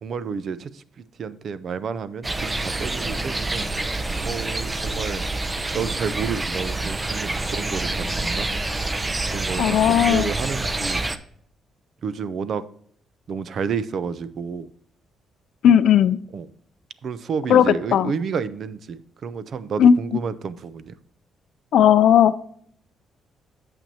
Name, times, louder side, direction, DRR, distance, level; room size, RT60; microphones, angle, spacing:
voice 1, 0.0-3.7 4.2-5.2 5.7-8.5 9.3-11.0 12.0-12.6 13.3-14.7 16.3-16.5 17.0-21.0, right 6 dB, 60° right, 15 dB, 0.6 m, -30 dB
sound 1, 2.2-11.2, right 2 dB, 20° right, 0.6 m, -27 dB
voice 2, 9.6-10.3 15.6-16.2 17.5-18.1 19.8-19.9 21.7-22.4, left 9 dB, 75° left, 14 dB, 0.4 m, -16 dB
8.9 x 6.9 x 2.8 m, 0.62 s
cardioid pair, 95°, 0 cm